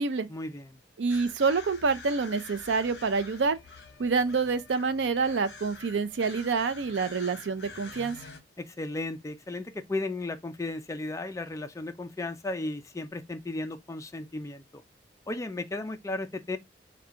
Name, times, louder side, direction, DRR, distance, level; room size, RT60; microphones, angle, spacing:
voice 1, 0.3-0.8 8.6-14.8 15.3-16.6, left 2 dB, 15° left, 0.4 m, -35 dB
voice 2, 1.0-3.6 4.0-8.2, right 4 dB, 85° right, 0.5 m, -27 dB
sound 1, 1.1-8.4, left 4 dB, 65° left, 0.8 m, -47 dB
4.8 x 2.3 x 3.6 m
head